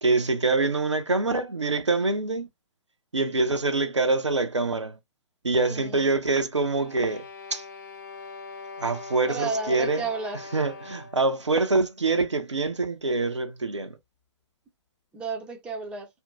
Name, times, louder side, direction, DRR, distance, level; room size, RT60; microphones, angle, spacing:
voice 1, 0.0-2.5 3.1-5.0 5.4-7.6 8.8-10.1 10.5-14.0, right 3 dB, 80° right, 0.6 m, -25 dB
voice 2, 5.6-6.1 9.3-10.4 15.1-16.1, right 4 dB, 5° right, 0.5 m, -32 dB
sound 1, 6.6-11.3, left 4 dB, 40° left, 0.8 m, -42 dB
2.8 x 2.6 x 2.3 m
figure-of-eight pair, 125°, 15 cm